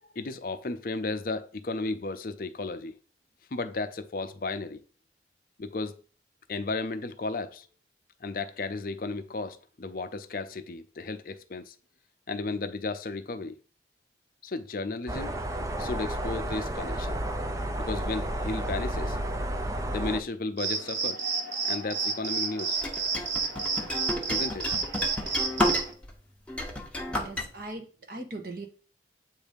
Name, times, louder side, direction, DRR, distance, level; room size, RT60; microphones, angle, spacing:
voice 1, 0.1-2.9 3.5-4.8 5.6-6.0 6.5-7.7 8.2-11.7 12.3-13.6 14.4-15.3 15.8-17.2 17.8-19.3 19.9-21.2 21.6-22.8 24.3-24.7, left 3 dB, 55° left, 0.5 m, -34 dB
sound 1, 15.1-20.2, right 1 dB, 20° right, 0.5 m, -31 dB
sound 2, 20.6-25.9, right 4 dB, 85° right, 1.0 m, -30 dB
sound 3, 22.8-26.1 26.5-27.5, left 1 dB, 5° left, 0.8 m, -31 dB
voice 2, 27.1-28.7, right 2 dB, 55° right, 1.3 m, -40 dB
8.0 x 2.7 x 5.1 m
head